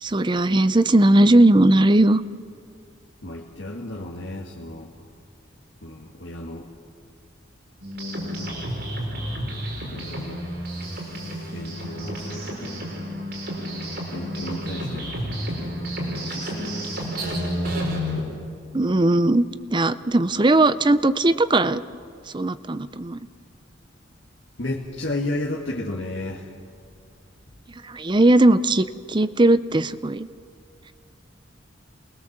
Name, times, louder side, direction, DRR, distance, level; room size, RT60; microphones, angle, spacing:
voice 1, 0.0-2.2 18.7-19.5 19.7-21.8 22.3-23.2 27.8-30.3, right 2 dB, 25° right, 13 dB, 0.6 m, -18 dB
voice 2, 3.2-5.1 5.8-6.7 8.2-8.6 9.8-10.4 11.5-12.8 14.1-15.2 16.2-16.8 24.6-26.5, left 1 dB, 70° left, -2 dB, 1.9 m, -33 dB
sound 1, 7.8-18.2, equal, 55° right, 5.2 m, -30 dB
28.5 x 21.0 x 7.4 m, 2.3 s
head